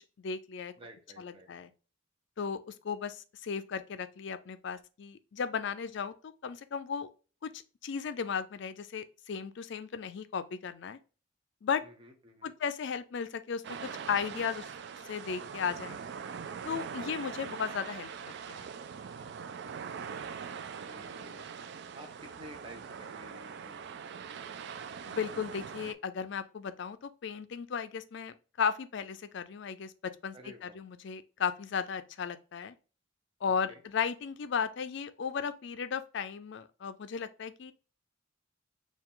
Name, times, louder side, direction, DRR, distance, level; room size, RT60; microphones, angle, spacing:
voice 1, 0.2-0.7 1.2-1.7 2.4-7.1 7.4-11.0 11.6-11.8 12.4-14.7 15.0-16.0 16.7-18.1 18.5-18.7 25.0-30.3 30.6-32.8 33.4-37.7, left 6 dB, 60° left, 0.4 m, -35 dB
voice 2, 0.7-1.5 11.8-12.5 19.6-20.0 20.4-23.9 30.3-30.8 33.5-33.8, equal, 25° right, 0.8 m, -52 dB
sound 1, 13.6-25.9, right 6 dB, 55° right, 0.3 m, -42 dB
4.5 x 2.3 x 3.7 m
head